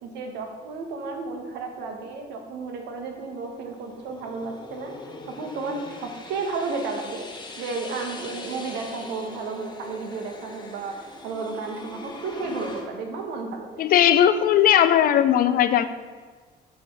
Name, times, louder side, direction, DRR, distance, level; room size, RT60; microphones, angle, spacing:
voice 1, 0.0-4.9 5.3-7.3 7.6-13.8, right 4 dB, 80° right, 3 dB, 1.2 m, -33 dB
sound 1, 2.7-12.8, left 3 dB, 25° left, 1.1 m, -41 dB
voice 2, 13.8-15.8, left 10 dB, 60° left, 12 dB, 0.5 m, -18 dB
7.7 x 3.4 x 6.4 m, 1.5 s
cardioid pair, 110°, 17 cm